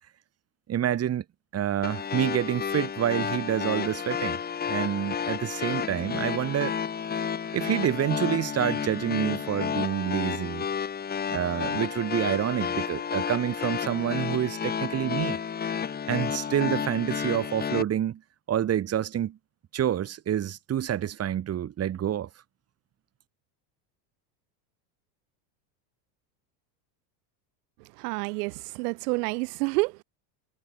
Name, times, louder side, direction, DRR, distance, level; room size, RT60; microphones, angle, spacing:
voice 1, 0.7-1.2 1.5-4.4 4.7-6.7 7.5-10.7 11.3-15.4 16.1-18.2 18.5-19.4 19.7-22.3, right 10 dB, 30° right, 3.6 m, -28 dB
sound 1, 1.8-17.8, left 7 dB, 20° left, 1.7 m, -31 dB
voice 2, 28.0-30.0, right 27 dB, 70° right, 3.9 m, -29 dB
supercardioid pair, 135°, 49 cm